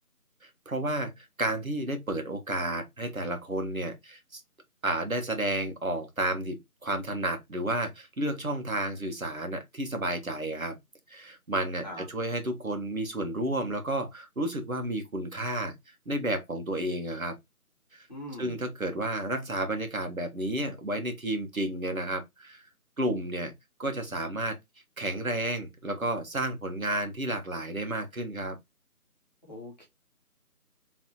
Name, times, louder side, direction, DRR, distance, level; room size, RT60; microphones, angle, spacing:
voice 1, 0.4-4.4 4.8-10.7 11.1-15.7 16.0-17.3 17.9-18.1 18.4-22.6 23.0-23.5 23.8-24.6 25.0-28.6, right 1 dB, 65° right, 1.6 m, -31 dB
voice 2, 18.1-18.6 29.4-29.9, left 1 dB, 30° left, 1.7 m, -41 dB
4.6 x 3.4 x 3.1 m
figure-of-eight pair, 165°, 45 cm